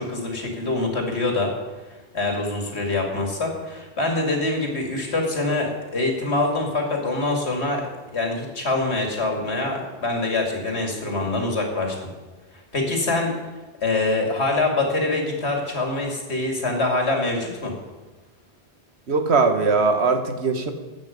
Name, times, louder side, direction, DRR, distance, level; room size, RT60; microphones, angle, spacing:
voice 1, 0.0-1.5 2.1-7.8 8.1-12.1 12.7-13.3 13.8-17.7, left 2 dB, 75° left, 1 dB, 2.7 m, -24 dB
voice 2, 19.1-20.7, right 4 dB, 75° right, 7 dB, 1.5 m, -20 dB
14.0 x 9.1 x 5.2 m, 1.3 s
omnidirectional pair, 1.1 m